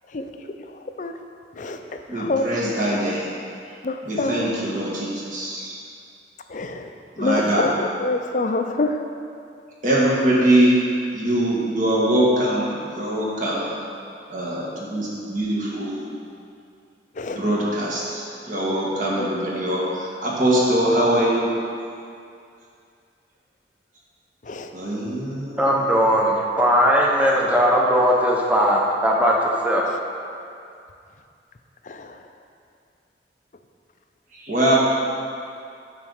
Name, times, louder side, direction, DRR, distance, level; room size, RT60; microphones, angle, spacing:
voice 1, 2.1-3.3 4.0-5.8 7.2-7.7 9.8-10.8 11.1-13.7 14.3-16.1 17.3-21.5 24.7-25.7 34.3-34.7, right 1 dB, 45° right, -6 dB, 1.8 m, -22 dB
voice 2, 3.8-4.5 6.5-6.9 7.2-9.0 17.2-17.4 19.2-19.3 24.5-24.7 31.9-32.1, left 3 dB, 45° left, 6 dB, 0.5 m, -25 dB
voice 3, 25.6-29.8, equal, 10° right, -2 dB, 0.9 m, -19 dB
9.0 x 4.1 x 6.5 m, 2.4 s
head